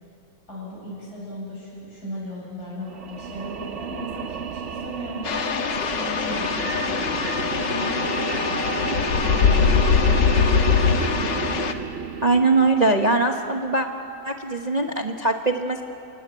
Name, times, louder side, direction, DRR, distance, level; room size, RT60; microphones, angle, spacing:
voice 1, 0.5-7.2 7.6-11.0, left 1 dB, 60° left, -5 dB, 8.5 m, -37 dB
sound 1, 2.9-13.2, right 6 dB, 50° right, 1.0 m, -31 dB
sound 2, 5.3-11.7, left 6 dB, 80° left, 1.9 m, -22 dB
voice 2, 12.2-13.9 14.2-15.8, right 3 dB, 30° right, 3 dB, 0.9 m, -21 dB
29.0 x 18.5 x 9.2 m, 2.8 s
omnidirectional pair, 1.9 m